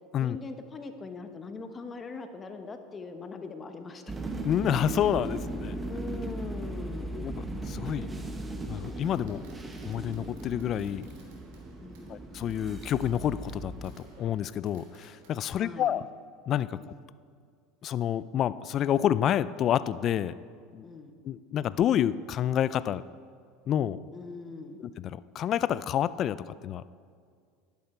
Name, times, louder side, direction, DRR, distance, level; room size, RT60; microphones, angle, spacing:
voice 1, 0.2-4.0 5.9-7.2 11.8-12.2 15.5-16.0 16.7-16.9 20.8-21.1 24.1-24.8, left 3 dB, 25° left, 7 dB, 1.1 m, -41 dB
sound 1, 4.1-14.0, right 2 dB, 15° right, 1.2 m, -37 dB
voice 2, 4.4-5.8 7.1-8.1 8.7-9.4 9.8-11.1 12.1-16.1 16.5-16.8 17.8-20.3 20.7-20.9 21.2-23.0 23.7-24.0 25.0-27.0, left 10 dB, 45° left, 17 dB, 0.4 m, -28 dB
Fireworks, 5.8-15.3, right 3 dB, 75° right, 3.1 m, -58 dB
11.5 x 10.5 x 4.4 m, 2.1 s
supercardioid pair, 110°, 0 cm